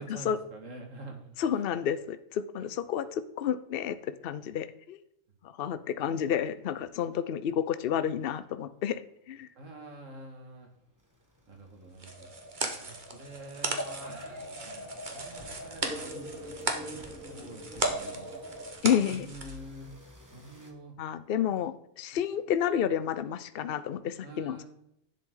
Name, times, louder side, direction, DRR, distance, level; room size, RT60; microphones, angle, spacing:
voice 1, 0.0-1.9 2.6-2.7 9.6-10.7 11.5-12.3 12.7-18.4 19.0-19.9 20.3-21.0 24.2-24.6, right 2 dB, 70° right, 2 dB, 2.3 m, -47 dB
voice 2, 1.4-5.0 5.4-9.0 9.3-9.5 18.8-19.3 21.0-24.6, left 9 dB, 55° left, 13 dB, 0.8 m, -30 dB
sound 1, 9.2-9.3 9.8-20.7, left 1 dB, 15° right, 1.5 m, -54 dB
sound 2, 12.0-19.6, right 3 dB, 40° right, 1.4 m, -37 dB
sound 3, 12.1-18.7, equal, 85° left, 3.0 m, -40 dB
10.5 x 7.7 x 3.8 m, 0.78 s
omnidirectional pair, 1.4 m